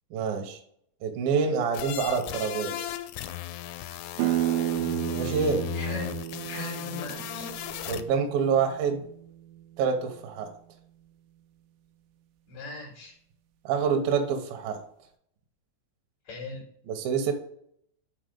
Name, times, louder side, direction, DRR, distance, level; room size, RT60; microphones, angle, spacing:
voice 1, 0.1-0.6 1.0-2.9 5.1-5.7 7.9-9.0 9.8-10.5 13.6-14.8 16.9-17.3, right 6 dB, 75° right, 3 dB, 2.3 m, -27 dB
sound 1, 1.7-8.0, left 13 dB, 90° left, 2.7 m, -36 dB
sound 2, 4.2-9.8, right 14 dB, 90° right, 2.8 m, -32 dB
voice 2, 5.7-6.1 6.5-7.5 12.5-13.1 16.2-16.7, left 2 dB, 55° left, -2 dB, 2.3 m, -39 dB
6.3 x 4.1 x 5.2 m, 0.67 s
omnidirectional pair, 4.9 m